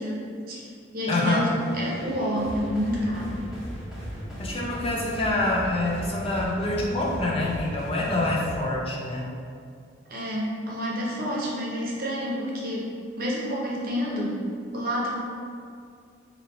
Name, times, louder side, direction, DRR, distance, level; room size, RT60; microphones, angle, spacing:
voice 1, 0.0-3.3 10.1-12.9 13.2-14.4 14.7-15.1, equal, 50° right, -4 dB, 0.7 m, -29 dB
voice 2, 1.1-1.5 4.4-9.3, left 2 dB, 30° left, -3 dB, 0.5 m, -26 dB
sound 1, 1.2-8.4, right 1 dB, 85° left, 0.9 m, -44 dB
sound 2, 2.4-8.6, equal, 5° right, 0.8 m, -37 dB
2.9 x 2.7 x 4.0 m, 2.3 s
head